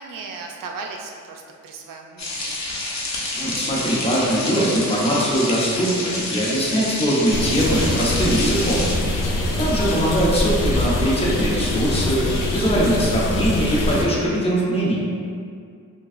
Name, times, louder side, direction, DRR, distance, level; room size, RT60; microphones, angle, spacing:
voice 1, 0.0-2.6 9.3-9.7, right 4 dB, 85° right, 2 dB, 0.5 m, -37 dB
sound 1, 2.2-8.9, left 2 dB, 55° left, 0.9 m, -28 dB
voice 2, 3.3-8.9 9.6-15.0, equal, 20° left, -6 dB, 1.0 m, -21 dB
sound 2, 7.3-14.1, left 1 dB, 80° left, 0.6 m, -24 dB
5.2 x 2.3 x 2.5 m, 2.2 s
cardioid pair, 55°, 32 cm